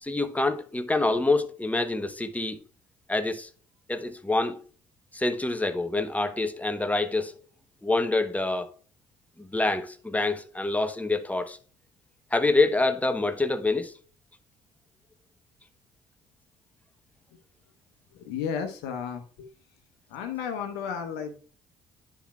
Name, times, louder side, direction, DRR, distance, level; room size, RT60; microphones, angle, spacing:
voice 1, 0.0-2.6 3.1-3.5 3.9-4.6 5.1-7.3 7.8-8.7 9.4-11.6 12.3-13.9, left 2 dB, 10° left, 1.0 m, -26 dB
voice 2, 18.1-19.5 20.1-21.4, left 7 dB, 70° left, 1.0 m, -33 dB
10.0 x 5.9 x 2.3 m
hypercardioid pair, 50°, 18 cm